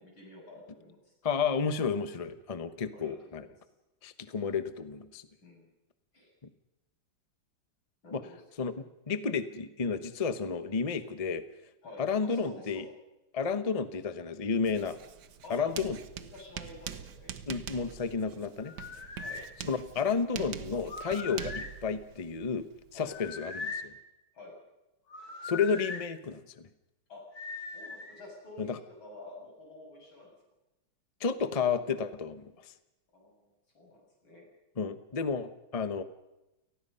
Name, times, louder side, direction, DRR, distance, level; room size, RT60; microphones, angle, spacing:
voice 1, 0.0-1.1 2.9-3.5 5.4-5.7 6.1-6.3 8.0-8.4 11.8-12.8 15.4-17.3 19.2-19.4 22.9-23.1 24.3-24.6 27.1-27.2 27.7-30.4 33.1-34.5, left 2 dB, 80° left, -1 dB, 8.6 m, -49 dB
voice 2, 1.2-3.5 4.0-5.2 8.1-8.2 8.6-11.4 12.0-12.9 13.3-15.0 15.5-16.0 17.5-18.7 19.6-22.7 22.9-23.9 25.4-26.7 28.6-28.8 31.2-32.5 34.8-36.0, left 5 dB, 30° left, 11 dB, 0.7 m, -31 dB
Writing, 14.7-23.3, right 8 dB, 60° right, 1.5 m, -44 dB
sound 1, 18.6-19.5 20.8-21.8 23.1-23.9 25.1-26.0 27.3-28.2, left 4 dB, 50° left, 2.8 m, -40 dB
29.0 x 18.5 x 5.6 m, 0.97 s
omnidirectional pair, 2.2 m